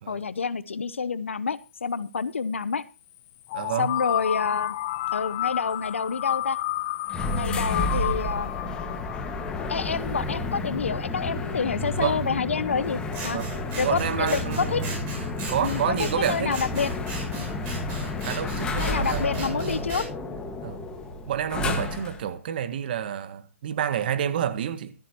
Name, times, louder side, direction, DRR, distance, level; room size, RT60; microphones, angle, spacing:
voice 1, 0.1-2.8 3.8-4.8 5.1-6.6 7.3-8.5 9.7-13.4 13.8-14.8 15.6-16.9 18.8-20.1, left 5 dB, 70° left, 0.9 m, -28 dB
sound 1, 3.5-10.3, left 15 dB, 35° left, 0.7 m, -31 dB
voice 2, 3.5-4.0 12.0-12.2 13.3-15.0 15.5-16.6 18.2-19.9 20.6-20.8 21.3-24.9, right 9 dB, 45° right, 1.7 m, -29 dB
sound 2, 7.1-22.3, left 2 dB, 10° left, 1.8 m, -31 dB
Scissors, 13.1-20.1, right 3 dB, 25° right, 6.8 m, -37 dB
16.0 x 13.5 x 3.0 m
figure-of-eight pair, 135°, 7 cm